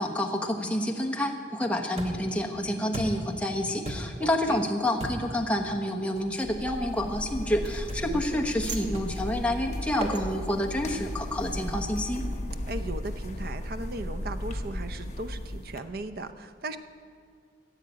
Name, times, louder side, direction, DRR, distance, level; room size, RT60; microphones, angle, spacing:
voice 1, 0.0-12.2, left 1 dB, 5° left, 2 dB, 1.1 m, -28 dB
sound 1, 2.0-2.4 2.9-3.4 3.8-4.3 5.0-5.4 6.2-6.4 7.9-8.2 8.9-9.3 10.0-10.2 10.9-11.2, right 1 dB, 35° right, 1.5 m, -37 dB
voice 2, 4.2-4.6 8.0-8.4 12.7-16.8, right 2 dB, 55° right, 10 dB, 0.7 m, -37 dB
sound 2, 6.3-10.9, right 6 dB, 75° right, 1.4 m, -47 dB
sound 3, 6.4-15.8, left 1 dB, 40° left, 1.0 m, -35 dB
15.0 x 8.2 x 8.5 m, 2.2 s
head